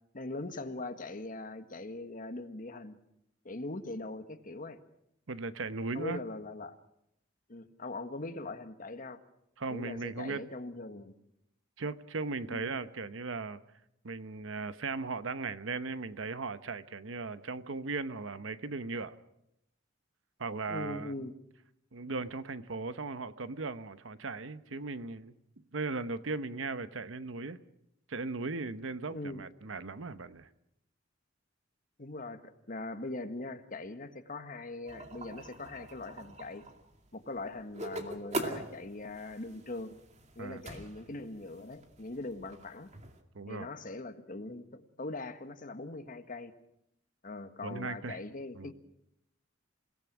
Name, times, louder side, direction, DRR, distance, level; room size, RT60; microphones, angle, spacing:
voice 1, 0.1-3.0 3.4-4.8 5.9-6.8 7.5-9.2 9.7-11.1 12.5-12.7 20.7-21.3 29.1-29.4 32.0-36.6 37.1-40.0 40.3-42.9 43.5-46.5 47.2-48.7, left 2 dB, 45° left, 9 dB, 1.5 m, -41 dB
voice 2, 5.3-6.2 9.6-10.4 11.8-13.6 14.0-19.1 20.4-21.3 21.9-25.3 25.7-27.6 28.1-30.5 40.4-40.6 43.3-43.7 47.6-48.2 48.6-48.7, right 3 dB, 90° right, 13 dB, 0.9 m, -37 dB
sound 1, 34.9-43.2, right 2 dB, 35° right, 2.4 m, -43 dB
28.5 x 18.0 x 6.1 m, 0.79 s
head